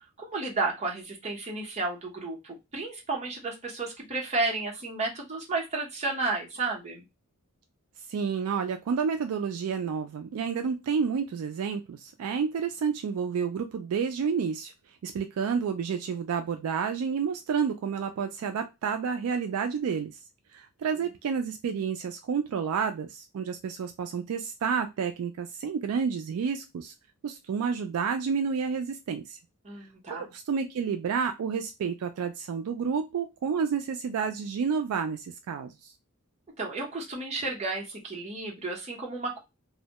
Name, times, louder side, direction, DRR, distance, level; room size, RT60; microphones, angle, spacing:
voice 1, 0.2-7.0 20.9-21.1 29.6-30.3 36.6-39.4, right 3 dB, 30° right, -1 dB, 0.8 m, -32 dB
voice 2, 8.1-14.7 15.0-20.2 20.5-26.9 27.2-29.4 30.1-35.9, right 6 dB, 70° right, 6 dB, 0.3 m, -30 dB
2.1 x 2.1 x 2.7 m, 0.23 s
head